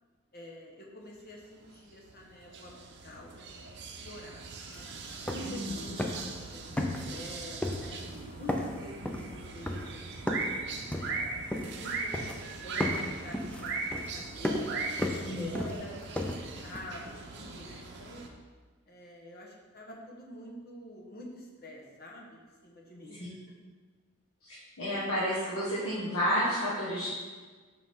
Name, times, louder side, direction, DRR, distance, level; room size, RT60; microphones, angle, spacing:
voice 1, 0.3-3.7 4.0-4.4 4.7-4.9 5.2-5.8 6.1-8.0 8.3-11.2 11.6-14.9 15.3-18.2 18.9-23.3, left 1 dB, 45° left, -1 dB, 1.1 m, -47 dB
sound 1, 1.6-18.3, right 4 dB, 55° right, 0.7 m, -40 dB
sound 2, 4.7-4.8 5.1-5.7 6.0-6.4 6.8-7.3 7.6-8.2 8.5-10.6 10.9-11.9 12.1-12.5 12.8-16.8, left 1 dB, 5° left, 0.4 m, -34 dB
voice 2, 5.4-5.7 15.2-15.6 23.2-23.3 24.4-27.1, equal, 85° left, -8 dB, 1.6 m, -31 dB
6.6 x 5.1 x 3.7 m, 1.4 s
head